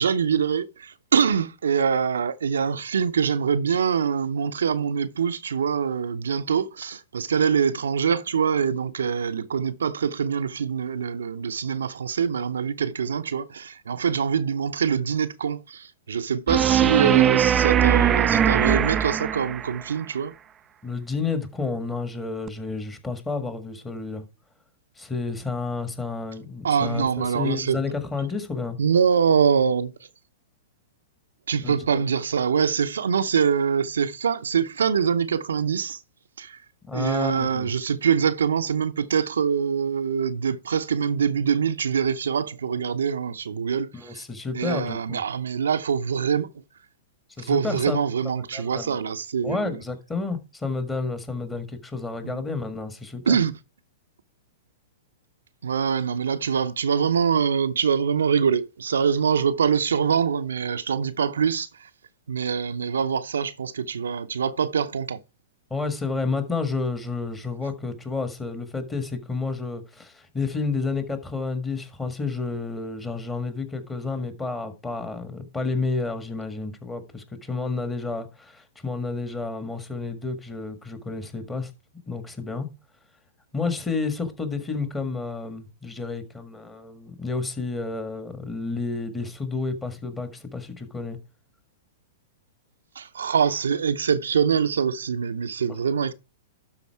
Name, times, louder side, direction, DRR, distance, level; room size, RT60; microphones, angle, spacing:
voice 1, 0.0-20.3 26.6-27.8 28.8-29.9 31.5-36.0 36.4-36.6 36.9-44.2 44.5-46.5 47.5-49.8 52.2-52.4 53.3-53.5 55.6-61.9 62.3-65.2 93.0-96.1, right 7 dB, 75° right, 0.6 m, -24 dB
sound 1, 16.5-19.8 22.5-22.6, right 9 dB, 25° right, 0.5 m, -20 dB
voice 2, 20.8-24.2 25.0-28.8 31.6-32.0 36.9-37.7 43.9-45.2 47.4-48.0 48.5-49.0 49.4-53.4 65.7-81.7 82.1-82.7 83.5-91.2, left 4 dB, 15° left, 1.6 m, -30 dB
12.0 x 4.1 x 4.6 m
hypercardioid pair, 110°, 0 cm